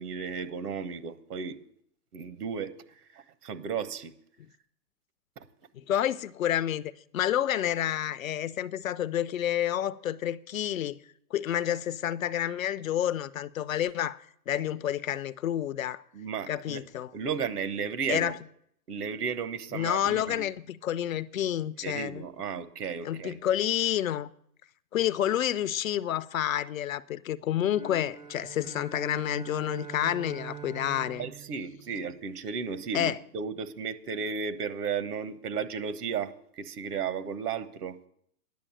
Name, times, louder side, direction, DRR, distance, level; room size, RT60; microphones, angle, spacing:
voice 1, 0.0-1.6 2.1-2.7 3.1-4.1 5.4-5.5 16.1-16.8 17.1-18.3 18.9-20.5 21.8-23.4 31.2-38.0, right 6 dB, 65° right, 1.3 m, -34 dB
voice 2, 5.7-11.0 11.3-16.0 16.5-17.1 18.1-18.4 19.7-22.2 23.0-24.3 24.9-31.3 32.9-33.2, left 11 dB, 55° left, 0.5 m, -29 dB
sound 1, 27.7-32.4, right 7 dB, 25° right, 0.5 m, -44 dB
10.5 x 6.9 x 8.7 m
hypercardioid pair, 145°, 49 cm